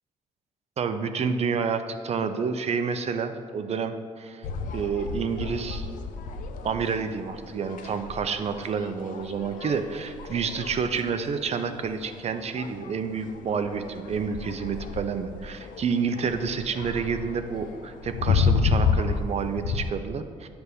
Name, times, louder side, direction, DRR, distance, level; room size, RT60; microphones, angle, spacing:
voice 1, 0.8-4.5 4.7-5.9 6.6-20.5, right 6 dB, 50° right, 8 dB, 0.6 m, -29 dB
sound 1, 4.4-19.9, left 5 dB, 80° left, 0.5 m, -31 dB
9.4 x 3.5 x 6.8 m, 2.1 s
cardioid pair, 80°, 14 cm